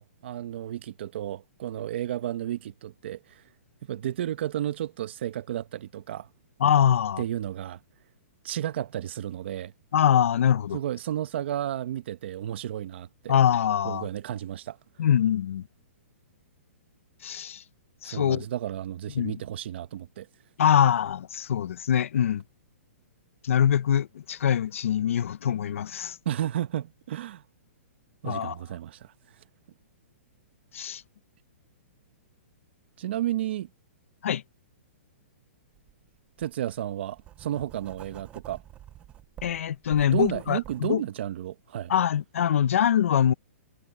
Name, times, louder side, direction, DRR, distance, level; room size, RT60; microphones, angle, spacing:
voice 1, 0.0-3.4 3.9-6.3 7.2-7.8 8.4-9.7 10.7-13.3 13.8-14.8 18.0-20.3 26.2-27.4 28.2-29.1 33.0-33.7 36.4-38.6 40.1-41.9, right 12 dB, 50° right, 1.2 m, -32 dB
voice 2, 6.6-7.2 9.9-10.8 13.3-14.1 15.0-15.7 17.2-17.6 18.0-18.5 19.1-19.3 20.6-22.4 23.4-26.2 28.2-28.5 30.7-31.0 34.2-34.4 39.4-41.0 41.9-43.3, left 9 dB, 70° left, 0.8 m, -23 dB
Writing, 35.7-35.9 36.4-40.8, right 12 dB, 15° right, 0.7 m, -47 dB
hypercardioid pair, 165°, 8 cm